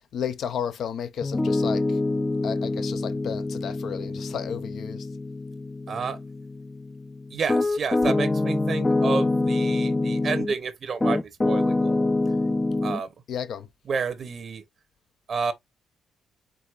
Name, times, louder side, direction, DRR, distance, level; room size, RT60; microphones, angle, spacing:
voice 1, 0.1-2.0 2.4-5.1 13.3-13.7, left 8 dB, 65° left, 0.6 m, -32 dB
Piano, 1.2-10.6 11.0-13.0, left 2 dB, 20° left, 0.4 m, -25 dB
voice 2, 5.9-6.2 7.3-12.1 12.8-13.1 13.9-14.6 15.3-15.5, right 5 dB, 50° right, 0.8 m, -30 dB
4.7 x 3.9 x 2.4 m
cardioid pair, 90°, 0 cm